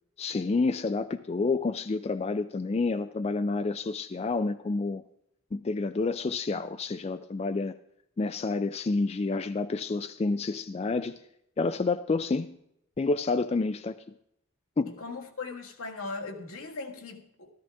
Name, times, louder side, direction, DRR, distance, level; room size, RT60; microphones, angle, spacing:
voice 1, 0.2-5.0 5.5-7.8 8.2-11.2 11.6-12.6 13.0-14.0 14.8-14.9, left 3 dB, 30° left, 11 dB, 0.3 m, -29 dB
voice 2, 14.9-17.5, left 3 dB, 80° left, 3 dB, 1.7 m, -39 dB
13.5 x 13.5 x 3.4 m, 0.77 s
head